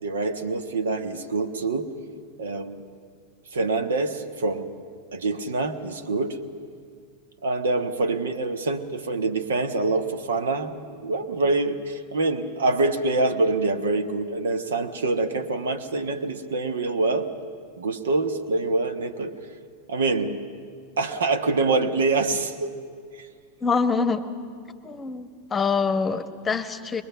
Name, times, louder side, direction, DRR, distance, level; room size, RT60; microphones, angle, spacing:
voice 1, 0.0-1.9 2.4-2.8 3.5-4.7 5.1-6.4 7.4-17.3 17.8-19.3 19.9-20.4 21.0-22.7 23.2-23.3, right 3 dB, 65° right, 8 dB, 1.4 m, -25 dB
voice 2, 23.6-24.2 24.8-27.0, left 5 dB, 15° left, 11 dB, 1.1 m, -25 dB
22.5 x 22.5 x 6.8 m, 2.1 s
figure-of-eight pair, 90°, 0 cm